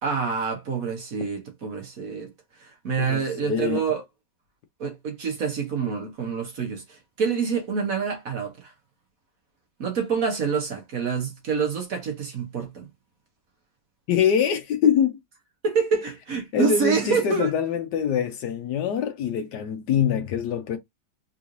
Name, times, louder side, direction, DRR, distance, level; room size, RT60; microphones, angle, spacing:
voice 1, 0.0-2.3 2.6-4.0 4.8-8.7 9.8-12.9 15.6-17.5, right 5 dB, 55° right, 1.2 m, -27 dB
voice 2, 3.0-3.8 14.1-15.2 16.5-20.8, left 8 dB, 70° left, 1.1 m, -24 dB
3.7 x 3.1 x 2.5 m
omnidirectional pair, 2.1 m